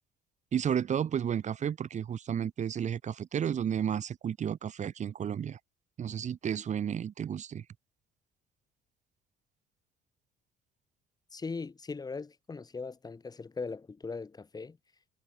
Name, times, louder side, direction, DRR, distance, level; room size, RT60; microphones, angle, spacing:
voice 1, 0.5-5.6 6.0-7.6, right 8 dB, 45° right, 1.8 m, -32 dB
voice 2, 11.3-14.8, left 4 dB, 25° left, 3.3 m, -39 dB
cardioid pair, 110°, 17 cm